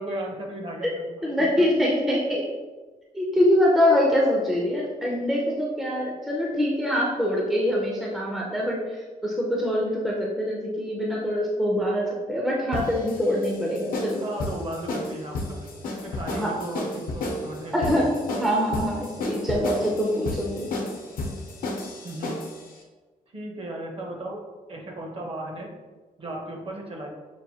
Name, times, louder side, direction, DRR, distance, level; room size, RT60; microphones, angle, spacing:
voice 1, 0.0-1.7 14.2-18.2 22.0-22.4 23.3-24.4 24.7-25.7 26.2-27.1, right 1 dB, 40° right, 0 dB, 0.7 m, -36 dB
voice 2, 1.2-2.4 3.1-8.8 9.2-14.2 16.4-16.5 17.7-20.7, left 1 dB, ahead, -3 dB, 0.4 m, -24 dB
sound 1, 12.7-22.6, left 2 dB, 80° left, 0.8 m, -32 dB
6.0 x 2.5 x 2.7 m, 1.3 s
wide cardioid pair, 170°, 14 cm